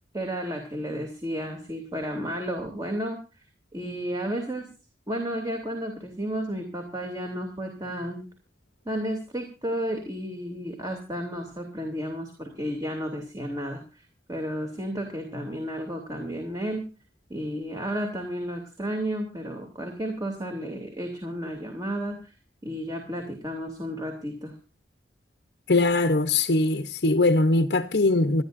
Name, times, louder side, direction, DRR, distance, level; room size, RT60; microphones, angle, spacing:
voice 1, 0.1-3.2 3.7-4.7 5.1-8.3 8.8-16.9 17.3-22.3 22.6-24.6, equal, 20° right, 2.8 m, -32 dB
voice 2, 25.7-28.4, left 2 dB, 65° left, 0.9 m, -21 dB
28.0 x 10.5 x 2.6 m
head